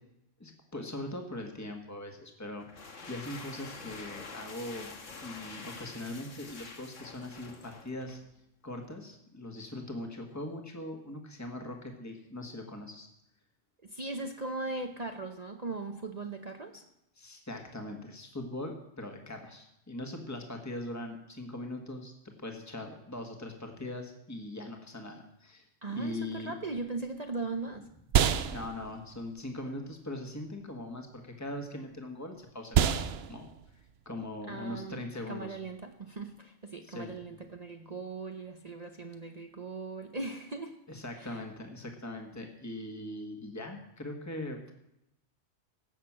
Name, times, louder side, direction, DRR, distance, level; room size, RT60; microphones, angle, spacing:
voice 1, 0.4-5.0 5.2-8.2 8.6-13.1 17.2-25.6 25.9-26.5 28.5-33.5 34.1-35.6 36.8-37.1 40.9-44.7, left 1 dB, 15° left, 3 dB, 1.7 m, -41 dB
sound 1, 2.6-8.3, left 4 dB, 75° left, 1.8 m, -47 dB
voice 2, 13.8-16.8 25.8-27.9 34.5-40.8 41.2-41.4, right 3 dB, 35° right, 5 dB, 0.9 m, -39 dB
sound 2, 26.8-36.4, right 8 dB, 60° right, 0.8 m, -33 dB
16.5 x 6.6 x 7.5 m, 0.82 s
omnidirectional pair, 1.3 m